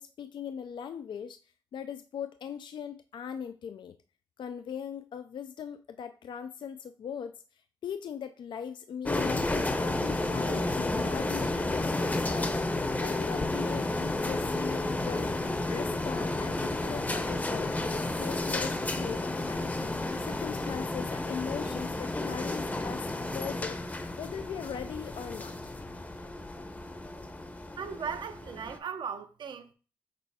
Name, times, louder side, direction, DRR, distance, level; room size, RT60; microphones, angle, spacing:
voice 1, 0.0-1.4 1.7-4.0 4.4-7.4 7.8-15.3 15.7-23.0 23.3-23.8 24.2-25.6, left 8 dB, 70° left, 0.4 m, -40 dB
sound 1, 9.1-28.8, left 2 dB, 20° left, 0.7 m, -32 dB
voice 2, 27.8-29.7, right 6 dB, 70° right, 0.7 m, -37 dB
6.6 x 4.1 x 3.5 m
cardioid pair, 80°, 8 cm